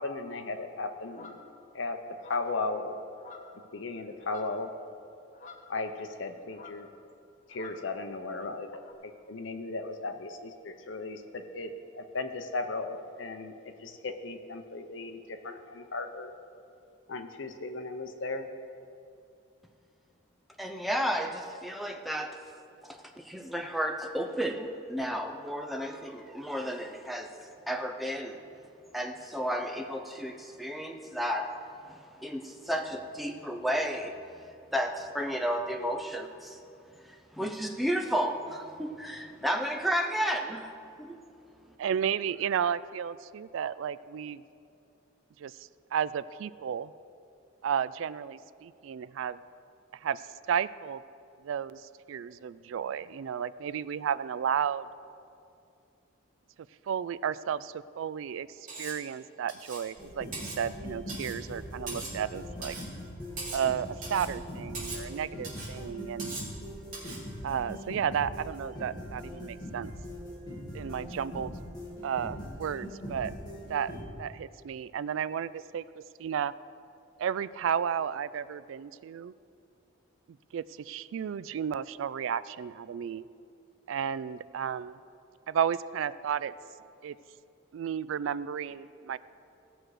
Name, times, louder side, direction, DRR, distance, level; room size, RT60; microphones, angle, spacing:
voice 1, 0.0-1.4 1.7-2.0 2.3-3.0 3.7-4.7 5.7-6.9 7.5-16.3 17.1-18.5, left 3 dB, 70° left, 7 dB, 0.8 m, -36 dB
sound 1, 1.1-1.5 2.2-2.6 3.2-3.7 4.0-4.7 5.3-6.2 6.5-6.9 7.5-7.9 8.8-8.9, left 4 dB, 40° left, 0.9 m, -49 dB
voice 2, 20.6-22.4 22.8-23.0 23.2-27.3 27.7-28.4 28.9-31.5 32.2-34.1 34.7-36.6 37.3-40.7 41.0-41.2, equal, ahead, 2 dB, 0.6 m, -32 dB
voice 3, 41.8-44.4 45.4-46.9 47.6-49.4 50.0-50.2 50.5-51.0 51.4-51.8 52.1-54.9 56.9-58.5 58.8-62.8 63.5-66.4 67.4-69.9 70.7-71.6 72.0-73.3 73.7-73.9 74.2-75.8 76.2-76.5 77.2-79.3 80.5-83.2 83.9-85.0 85.5-86.5 87.0-87.1 87.7-89.2, right 8 dB, 75° right, 17 dB, 0.3 m, -33 dB
Cutlery silverware, 58.7-59.0 59.5-59.9 60.3-60.6 61.1-61.4 61.9-62.2 62.6-62.9 63.4-63.7 64.0-64.3 64.7-65.1 65.4-65.7 66.2-66.5 66.9-67.2, right 3 dB, 40° right, 2.9 m, -40 dB
sound 2, 60.0-74.0, equal, 20° left, 2.0 m, -41 dB
17.0 x 6.2 x 4.9 m, 2.5 s
head